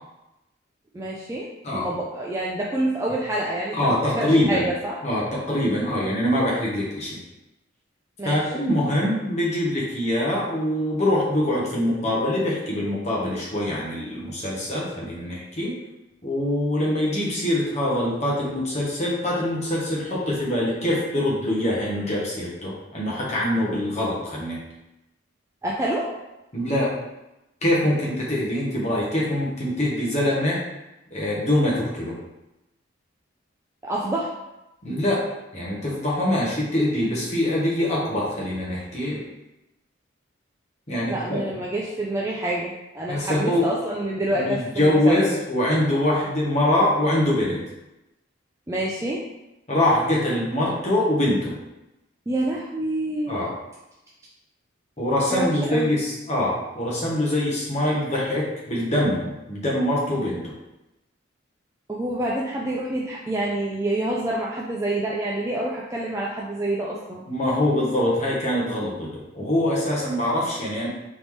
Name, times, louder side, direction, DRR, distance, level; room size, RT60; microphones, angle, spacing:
voice 1, 0.9-5.0 8.2-8.4 25.6-26.1 33.8-34.3 41.1-45.2 48.7-49.2 52.3-53.4 55.3-56.0 61.9-67.2, right 1 dB, 15° right, -4 dB, 0.3 m, -27 dB
voice 2, 3.7-4.7 5.0-7.2 8.2-15.8 16.2-24.6 26.5-27.0 27.6-30.6 31.1-32.2 34.8-35.3 35.5-39.2 40.9-41.4 43.1-43.7 44.3-47.6 49.7-51.5 53.3-53.5 55.0-60.5 67.3-70.9, left 1 dB, 35° left, -5 dB, 1.1 m, -24 dB
3.9 x 3.5 x 3.1 m, 0.95 s
head